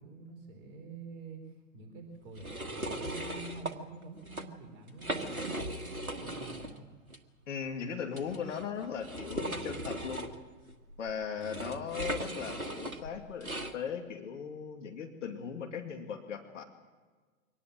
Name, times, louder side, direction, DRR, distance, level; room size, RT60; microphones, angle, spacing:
voice 1, 0.0-6.9 11.3-11.9, right 3 dB, 45° right, 4 dB, 4.3 m, -48 dB
sound 1, 2.3-3.7 4.2-4.4 4.9-6.8 7.1-7.2 8.1-13.7, right 1 dB, 85° right, 1.6 m, -38 dB
voice 2, 7.5-10.3 11.0-13.5 13.7-16.6, left 7 dB, 60° left, 5 dB, 2.6 m, -38 dB
24.0 x 18.5 x 7.6 m, 1.4 s
figure-of-eight pair, 100°, 41 cm